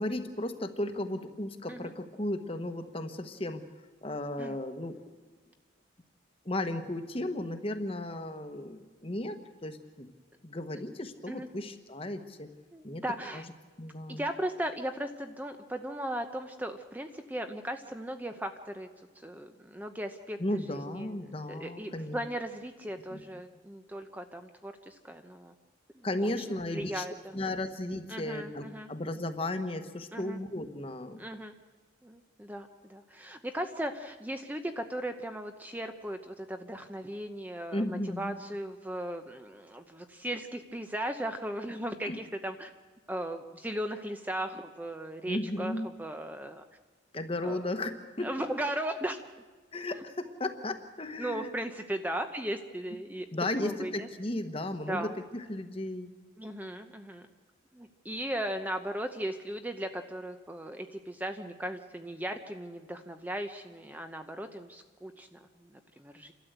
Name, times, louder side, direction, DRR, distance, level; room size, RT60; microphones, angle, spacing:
voice 1, 0.0-3.6 4.0-5.0 6.4-10.1 10.4-12.5 12.8-13.0 13.3-13.4 13.8-14.2 20.4-22.2 23.1-23.2 26.0-27.0 27.3-31.2 37.7-38.4 42.0-42.2 45.3-45.9 47.1-48.3 49.7-51.5 53.3-56.1, left 1 dB, 30° left, 8 dB, 1.3 m, -35 dB
voice 2, 12.7-13.4 14.1-18.9 19.2-25.5 25.9-27.4 28.1-28.9 30.1-30.4 31.2-31.5 32.0-42.7 43.1-45.7 46.0-46.6 47.4-47.6 48.2-49.2 51.2-53.3 53.6-54.1 54.9-55.1 56.4-57.3 57.7-66.3, right 1 dB, 10° right, 7 dB, 0.8 m, -37 dB
29.5 x 13.0 x 8.1 m, 1.4 s
head